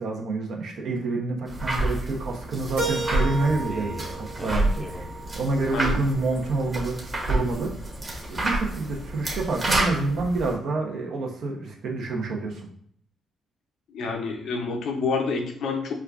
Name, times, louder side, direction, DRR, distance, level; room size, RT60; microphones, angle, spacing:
voice 1, 0.0-5.1 5.3-7.0 7.3-7.7 8.3-12.7, right 3 dB, 65° right, 1 dB, 0.7 m, -28 dB
sound 1, 1.5-10.5, right 1 dB, 25° right, 1.0 m, -29 dB
Keyboard (musical), 2.8-5.7, right 3 dB, 90° right, 1.1 m, -33 dB
sound 2, 2.9-9.3, equal, ahead, 0.6 m, -43 dB
voice 2, 13.9-15.9, left 4 dB, 75° left, 3 dB, 0.6 m, -28 dB
4.4 x 2.3 x 2.4 m, 0.64 s
cardioid pair, 90°, 0 cm